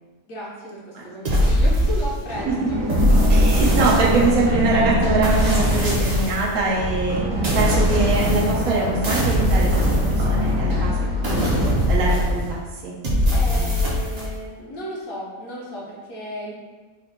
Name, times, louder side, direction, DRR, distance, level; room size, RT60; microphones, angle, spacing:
voice 1, 0.2-2.8 13.3-16.5, equal, 70° left, -6 dB, 1.2 m, -34 dB
sound 1, 1.2-2.4 2.9-4.5 5.2-6.5 7.4-8.7 9.0-10.6 11.2-12.6 13.0-14.3, equal, 45° right, 0.5 m, -21 dB
Run, 2.3-12.0, left 1 dB, 65° right, 1.4 m, -24 dB
voice 2, 3.0-7.2 7.5-10.9 11.2-11.5 11.9-12.6 12.8-12.9 13.3-13.9, right 3 dB, 85° right, -3 dB, 1.1 m, -24 dB
3.8 x 2.1 x 4.1 m, 1.3 s
omnidirectional pair, 1.5 m